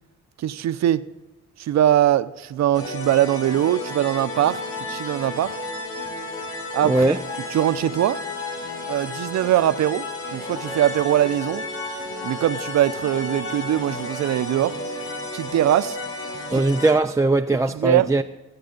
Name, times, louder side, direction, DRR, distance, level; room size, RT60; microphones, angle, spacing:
voice 1, 0.4-1.1 1.6-4.6 4.9-5.5 6.7-7.2 7.5-8.2 8.9-11.6 12.2-14.8 15.3-16.0 16.5-16.7 17.7-18.1, right 12 dB, 65° right, 0.7 m, -21 dB
sound 1, 2.7-16.9, left 2 dB, 45° left, 5.4 m, -32 dB
voice 2, 6.8-7.2 16.5-18.2, right 2 dB, 10° right, 0.4 m, -20 dB
21.0 x 8.9 x 3.9 m
cardioid pair, 90°, 30 cm